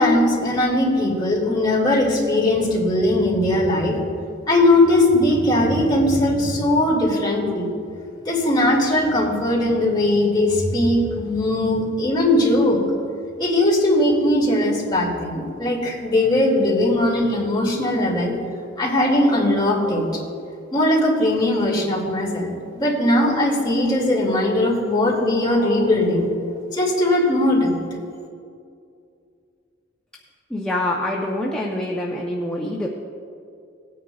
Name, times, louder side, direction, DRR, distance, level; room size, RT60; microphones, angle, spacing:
voice 1, 0.0-4.0 4.5-7.7 8.3-12.8 13.4-18.3 18.8-20.1 20.7-26.3 26.7-27.8, left 1 dB, 20° left, -4 dB, 2.3 m, -19 dB
voice 2, 30.5-32.9, left 1 dB, 5° left, -3 dB, 0.7 m, -25 dB
18.5 x 9.5 x 2.4 m, 2.4 s
head